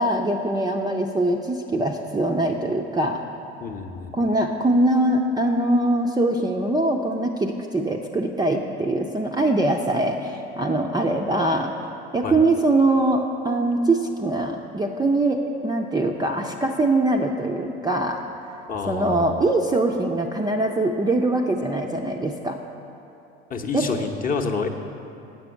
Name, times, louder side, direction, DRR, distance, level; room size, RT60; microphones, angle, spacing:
voice 1, 0.0-3.2 4.1-11.7 12.1-18.2 18.9-22.6 23.7-23.9, right 2 dB, 10° right, 1 dB, 0.5 m, -22 dB
voice 2, 3.6-4.1 12.2-12.4 18.7-19.4 23.5-24.7, left 5 dB, 25° left, 3 dB, 0.8 m, -28 dB
8.2 x 5.9 x 8.0 m, 2.8 s
figure-of-eight pair, 60°, 32 cm